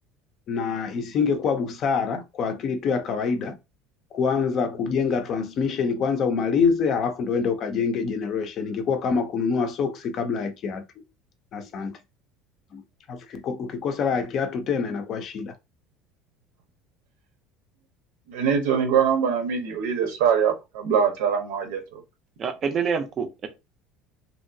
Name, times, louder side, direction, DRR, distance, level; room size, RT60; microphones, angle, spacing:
voice 1, 0.5-3.5 4.1-10.8 11.5-12.0 12.7-12.8 13.1-15.5, left 5 dB, 35° left, 0.5 m, -25 dB
voice 2, 18.3-22.0, right 7 dB, 90° right, 1.0 m, -23 dB
voice 3, 22.4-23.5, right 6 dB, 30° right, 0.5 m, -27 dB
3.0 x 2.7 x 2.6 m
cardioid pair, 165°, 0 cm